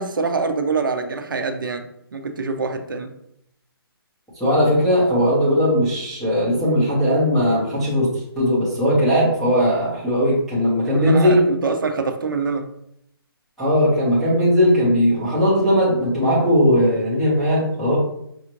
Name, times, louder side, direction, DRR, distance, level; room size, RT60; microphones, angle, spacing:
voice 1, 0.0-1.8 2.1-3.1 10.8-12.7, right 4 dB, 55° right, 6 dB, 0.5 m, -25 dB
voice 2, 4.4-11.4 13.6-18.0, equal, ahead, -13 dB, 0.5 m, -18 dB
5.4 x 2.5 x 2.9 m, 0.75 s
hypercardioid pair, 175°, 13 cm